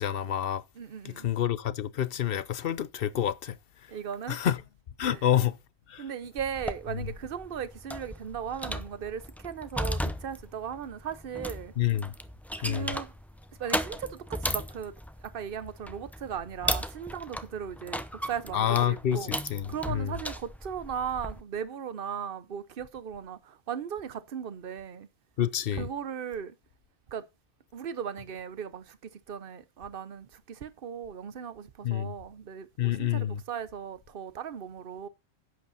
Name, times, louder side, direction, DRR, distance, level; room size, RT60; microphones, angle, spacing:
voice 1, 0.0-0.6 1.0-3.6 4.3-4.6 5.0-5.6 5.9-6.0 6.9-7.1 11.8-12.1 12.6-13.0 18.5-20.1 25.4-25.9 31.8-32.1 32.8-33.4, left 10 dB, 60° left, 0.9 m, -28 dB
voice 2, 0.8-1.3 3.9-4.4 5.0-5.2 6.0-11.7 12.6-13.1 13.6-14.9 15.2-19.3 19.7-25.1 25.7-26.5 27.1-27.2 27.7-35.1, right 8 dB, 55° right, 1.1 m, -37 dB
sound 1, 6.4-21.4, equal, ahead, 0.6 m, -36 dB
11.0 x 8.3 x 4.1 m
omnidirectional pair, 1.1 m